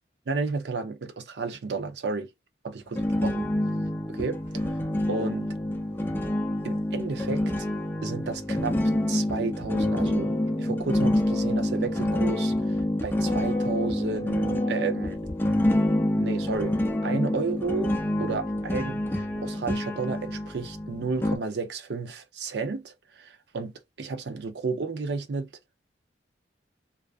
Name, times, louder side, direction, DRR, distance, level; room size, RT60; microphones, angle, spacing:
voice 1, 0.3-2.3 2.6-3.5 4.1-4.4 5.1-5.5 6.6-7.7 8.0-8.8 9.1-15.2 16.2-16.8 17.0-23.7 24.0-25.5, right 4 dB, 65° right, 0.5 m, -32 dB
sound 1, 3.0-21.4, left 1 dB, 10° left, 0.4 m, -27 dB
2.3 x 2.3 x 2.4 m
head